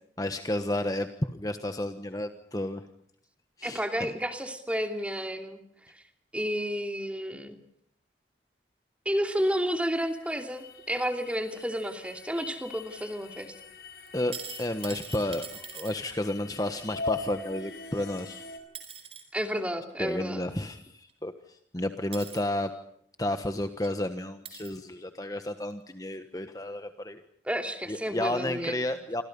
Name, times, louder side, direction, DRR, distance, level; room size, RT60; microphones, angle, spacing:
voice 1, 0.2-2.8 3.6-4.1 14.1-18.4 20.0-22.7 23.2-27.2 27.9-29.2, left 1 dB, 20° left, 8 dB, 1.3 m, -32 dB
voice 2, 3.6-5.6 5.9-6.0 6.3-7.6 9.0-13.5 19.3-20.4 27.4-28.7, equal, 5° right, 6 dB, 2.7 m, -31 dB
sound 1, 9.2-18.6, left 3 dB, 60° left, 5.1 m, -42 dB
sound 2, 14.1-15.9 18.2-18.3 18.7-19.2 21.1-21.2 22.1-22.4 23.4-23.5 23.8-23.9 24.4-24.8 25.6-25.7, right 7 dB, 30° right, 4.5 m, -42 dB
28.5 x 26.0 x 5.5 m, 0.67 s
head